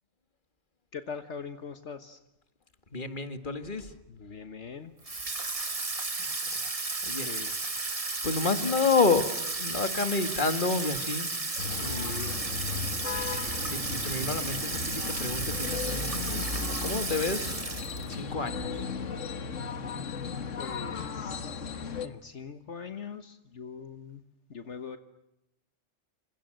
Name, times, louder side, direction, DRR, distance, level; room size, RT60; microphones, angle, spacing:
voice 1, 0.9-2.2 4.1-4.9 7.2-7.5 20.6-21.8 22.0-24.2 24.5-25.0, left 6 dB, 70° left, 9 dB, 1.6 m, -42 dB
voice 2, 2.9-3.9 6.2-6.7 7.0-7.3 8.2-9.2 9.6-11.3 11.7-12.4 13.7-17.6 18.0-18.9, left 4 dB, 40° left, 9 dB, 2.3 m, -30 dB
Water tap faucet / Sink (filling or washing), 5.0-18.2, right 3 dB, 30° right, 1.6 m, -33 dB
sound 1, 11.6-22.1, left 5 dB, 85° left, 1.9 m, -36 dB
28.5 x 26.5 x 7.8 m, 0.87 s
omnidirectional pair, 1.3 m